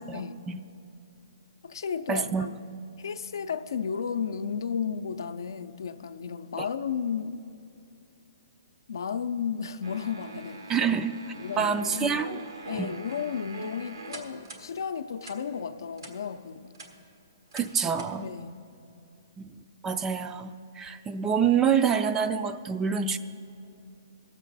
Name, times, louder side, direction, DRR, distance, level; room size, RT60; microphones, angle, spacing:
voice 1, 0.1-0.6 2.1-2.5 10.7-11.2 11.6-12.4 12.8-12.9 17.5-18.3 19.4-19.5 19.8-23.2, right 7 dB, 15° right, 10 dB, 0.3 m, -26 dB
voice 2, 1.6-2.5 3.0-7.4 8.9-10.9 11.4-16.7 18.2-18.6, left 7 dB, 75° left, 9 dB, 0.5 m, -33 dB
sound 1, 9.8-14.7 15.2-15.4 16.0-16.1 16.6-16.9 17.5-17.7 18.0-18.1, right 3 dB, 90° right, 1.4 m, -42 dB
18.0 x 7.4 x 4.0 m, 2.6 s
hypercardioid pair, 145°, 2 cm